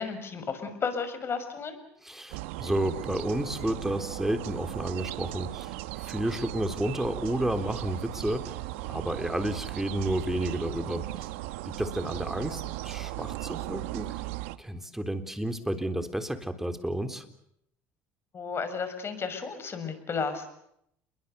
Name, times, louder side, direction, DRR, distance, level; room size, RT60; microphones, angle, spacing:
voice 1, 0.0-1.8 18.3-20.5, left 5 dB, 35° left, 10 dB, 6.5 m, -33 dB
voice 2, 2.0-8.5 8.9-11.0 11.7-14.2 14.6-17.3, right 1 dB, 5° right, 8 dB, 3.7 m, -31 dB
sound 1, 2.3-14.6, right 17 dB, 80° right, 1.3 m, -37 dB
29.5 x 23.0 x 7.0 m, 0.74 s
supercardioid pair, 80°, 7 cm